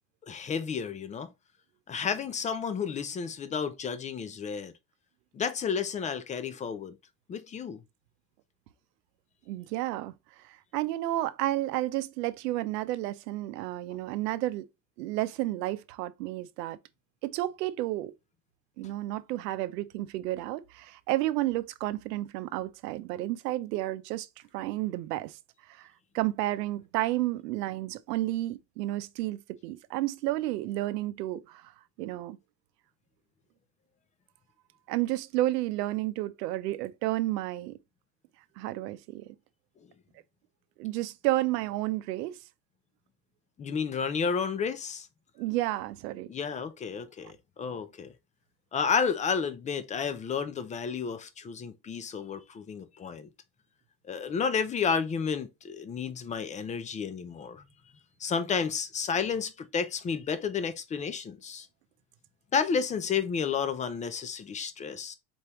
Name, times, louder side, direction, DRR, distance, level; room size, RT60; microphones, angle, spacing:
voice 1, 0.2-1.3 1.9-4.7 5.3-7.0 7.3-7.8 43.6-45.1 46.3-48.1 48.7-53.3 54.1-57.6 58.2-61.7 62.5-65.2, left 6 dB, 15° left, 0.3 m, -31 dB
voice 2, 9.5-14.6 15.0-16.8 17.2-18.1 18.8-24.3 24.5-25.4 25.7-31.7 32.0-32.4 34.9-37.8 38.6-39.3 40.8-42.4 45.4-46.3, right 16 dB, 85° right, 0.6 m, -31 dB
4.3 x 3.4 x 2.9 m
supercardioid pair, 110°, 47 cm